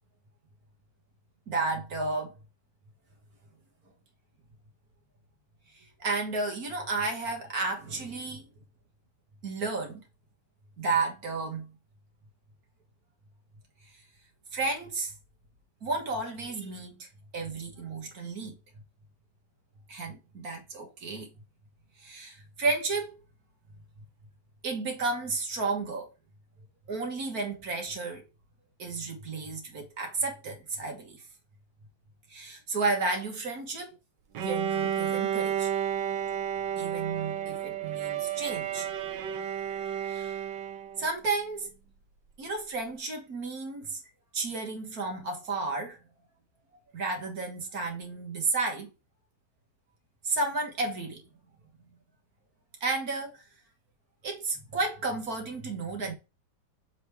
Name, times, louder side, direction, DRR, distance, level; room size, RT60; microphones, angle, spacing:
voice 1, 1.5-2.4 5.7-8.4 9.4-10.0 10.8-11.7 14.5-15.1 15.8-18.6 19.9-21.3 22.0-23.1 24.6-26.1 26.9-28.3 28.8-31.2 32.3-33.9 34.4-35.7 36.8-38.9 40.0-40.4 41.0-41.7 42.4-44.0 44.3-46.0 46.9-48.9 50.2-51.2 52.8-53.5 54.2-56.1, right 3 dB, 60° right, 1.8 m, -32 dB
Bowed string instrument, 34.4-41.1, right 9 dB, 90° right, 1.5 m, -31 dB
7.0 x 3.4 x 4.6 m
omnidirectional pair, 1.9 m